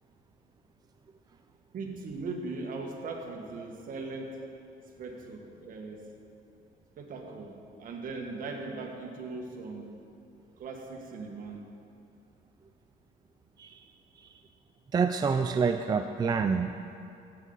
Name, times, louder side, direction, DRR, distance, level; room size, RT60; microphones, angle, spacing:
voice 1, 1.7-4.5 5.0-6.0 7.0-9.9 10.6-11.6, right 3 dB, 55° right, 1 dB, 1.6 m, -39 dB
voice 2, 14.9-16.8, right 5 dB, 25° right, 7 dB, 0.3 m, -27 dB
14.5 x 9.2 x 4.0 m, 2.6 s
cardioid pair, 110°, 17 cm